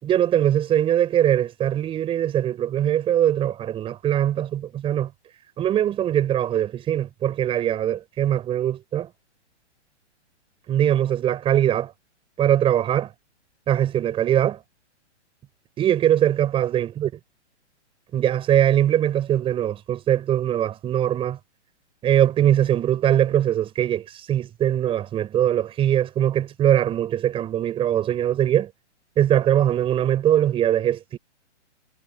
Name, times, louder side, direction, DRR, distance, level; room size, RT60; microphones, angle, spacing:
voice 1, 0.0-5.1 5.6-9.1 10.7-11.9 12.4-13.1 13.7-14.6 15.8-17.1 18.1-21.4 22.0-28.7 29.2-31.2, right 11 dB, 15° right, 6.0 m, -21 dB
hypercardioid pair, 160°, 36 cm